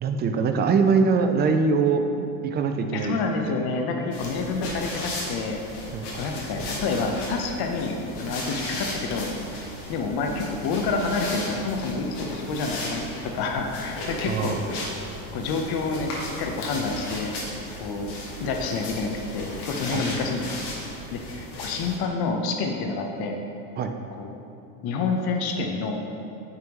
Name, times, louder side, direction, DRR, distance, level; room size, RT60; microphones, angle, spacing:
voice 1, 0.0-3.2 3.5-3.6 5.9-6.0 14.2-14.8 19.9-20.0 23.8-23.9, right 5 dB, 25° right, 6 dB, 0.3 m, -23 dB
voice 2, 2.9-5.6 6.1-9.3 9.9-14.9 15.3-17.3 17.8-18.1 18.4-20.7 21.1-23.4 24.1-24.4 24.8-26.0, left 4 dB, 50° left, 3 dB, 0.9 m, -28 dB
sound 1, 4.1-22.0, left 1 dB, 80° left, 1.5 m, -35 dB
9.5 x 3.5 x 3.0 m, 2.6 s
supercardioid pair, 95°, 47 cm